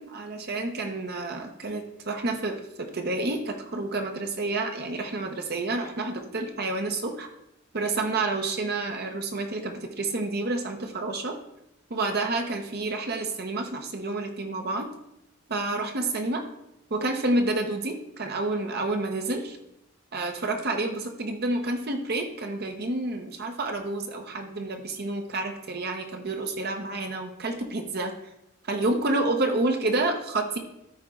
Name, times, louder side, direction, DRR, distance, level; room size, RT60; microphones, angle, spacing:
voice 1, 0.0-7.3 7.7-11.4 11.9-14.9 15.5-16.4 16.9-19.6 20.1-28.1 28.7-30.6, right 2 dB, 50° right, 4 dB, 0.9 m, -29 dB
13.0 x 4.5 x 3.7 m, 0.83 s
head